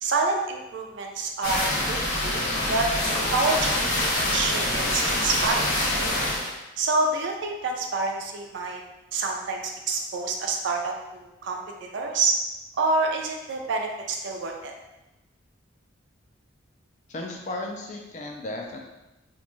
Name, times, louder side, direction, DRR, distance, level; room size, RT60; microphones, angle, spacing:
voice 1, 0.0-2.9 3.3-5.9 6.8-8.8 9.1-11.6 11.9-12.3 12.8-14.7, right 3 dB, 65° right, 2 dB, 0.4 m, -27 dB
sound 1, 1.4-6.5, left 1 dB, 85° left, 0.8 m, -25 dB
voice 2, 17.1-18.8, left 2 dB, 35° left, 0 dB, 0.3 m, -34 dB
2.5 x 2.2 x 3.0 m, 1.0 s
head